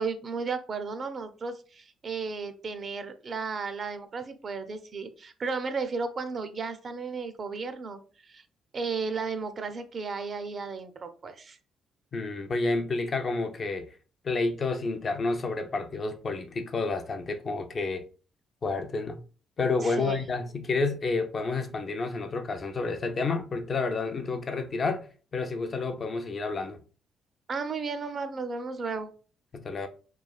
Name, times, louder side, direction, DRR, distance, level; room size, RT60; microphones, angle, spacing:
voice 1, 0.0-8.0 8.3-8.4 8.7-11.6 19.8-20.2 27.5-29.1, right 4 dB, 45° right, 0.4 m, -34 dB
voice 2, 12.1-14.0 14.2-18.1 18.6-19.2 19.6-25.1 25.3-26.8 29.5-29.9, left 3 dB, 45° left, 0.4 m, -30 dB
3.1 x 2.2 x 2.3 m
cardioid pair, 90°, 0 cm